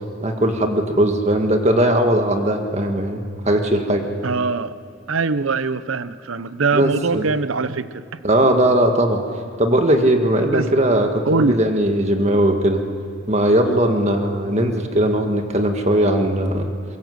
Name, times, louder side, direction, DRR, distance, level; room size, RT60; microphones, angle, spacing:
voice 1, 0.2-4.1 6.7-7.3 8.2-9.2 9.6-12.8 13.3-16.7, right 1 dB, 30° right, 4 dB, 1.8 m, -19 dB
voice 2, 4.2-4.7 5.1-8.0 10.5-10.7 11.2-11.6, right 4 dB, 75° right, 14 dB, 0.8 m, -22 dB
23.0 x 22.0 x 8.1 m, 2.4 s
head